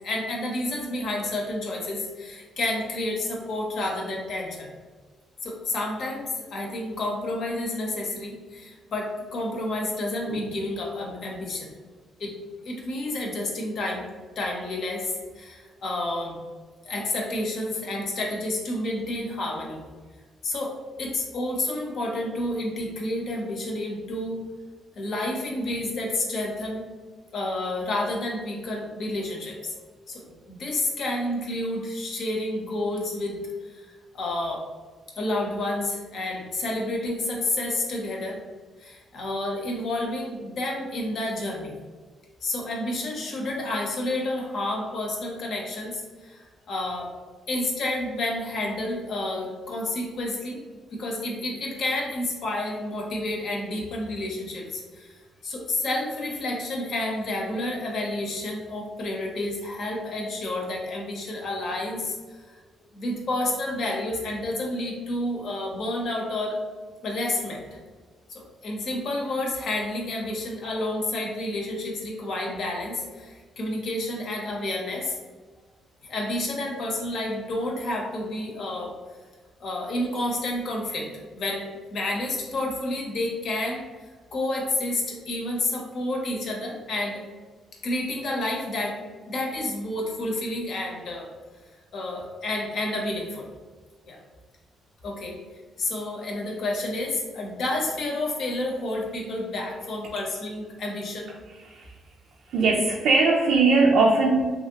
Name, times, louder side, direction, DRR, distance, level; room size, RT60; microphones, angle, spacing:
voice 1, 0.0-4.7 5.4-11.7 12.2-12.3 12.6-14.1 14.4-16.4 16.8-19.8 20.4-24.4 24.9-26.8 27.3-29.8 30.1-33.9 34.1-34.6 35.2-38.4 38.8-41.7 42.4-47.1 47.5-50.6 50.9-55.1 55.4-62.2 62.9-66.6 67.0-67.8 68.3-75.2 76.0-79.0 79.6-83.8 84.3-87.2 87.8-89.0 89.3-91.3 91.9-93.5 94.1-94.2 95.0-95.4 95.8-101.3, left 1 dB, 65° left, 0 dB, 0.8 m, -30 dB
voice 2, 102.5-104.5, right 3 dB, 75° right, -1 dB, 0.4 m, -20 dB
2.8 x 2.7 x 2.8 m, 1.4 s
cardioid pair, 90°, 0 cm